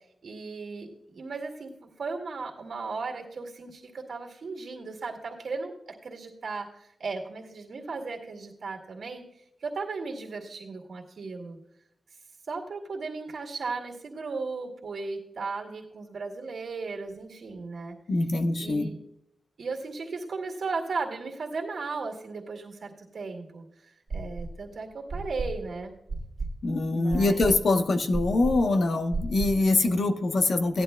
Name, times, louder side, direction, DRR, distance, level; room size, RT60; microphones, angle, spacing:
voice 1, 0.2-9.2 9.6-11.6 12.5-18.0 18.6-19.0 19.6-25.9 26.8-27.4, right 4 dB, 70° right, 2 dB, 2.1 m, -36 dB
voice 2, 18.1-18.9 26.6-30.8, left 2 dB, 65° left, 7 dB, 0.9 m, -24 dB
sound 1, 24.1-24.7 25.1-29.7, right 3 dB, 40° right, 1.8 m, -34 dB
17.0 x 11.0 x 2.2 m, 0.80 s
wide cardioid pair, 155°, 0 cm